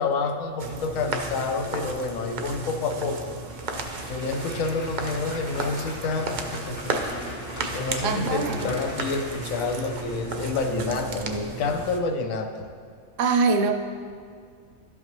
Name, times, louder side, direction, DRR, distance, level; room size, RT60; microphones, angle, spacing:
voice 1, 0.0-3.4 4.0-7.4 7.7-12.7, left 3 dB, 80° left, 5 dB, 1.1 m, -28 dB
sound 1, 0.6-12.0, right 3 dB, 50° right, 0.5 m, -34 dB
Applause, 3.5-11.1, left 1 dB, 60° left, 2.3 m, -41 dB
voice 2, 8.0-8.7 13.2-13.7, right 4 dB, 70° right, 6 dB, 0.9 m, -23 dB
12.0 x 5.6 x 3.1 m, 2.2 s
omnidirectional pair, 1.4 m